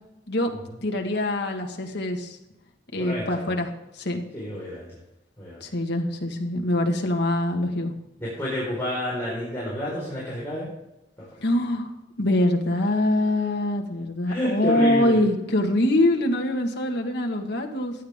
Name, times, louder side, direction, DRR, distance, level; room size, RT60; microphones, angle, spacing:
voice 1, 0.8-2.4 2.9-3.7 3.9-4.2 5.6-7.9 11.4-11.9 12.2-17.9, left 1 dB, 65° left, 2 dB, 1.8 m, -24 dB
voice 2, 3.0-3.5 4.3-4.9 5.4-5.6 8.2-10.7 14.2-15.2, left 1 dB, 15° left, -8 dB, 4.7 m, -29 dB
15.0 x 10.5 x 3.7 m, 0.94 s
head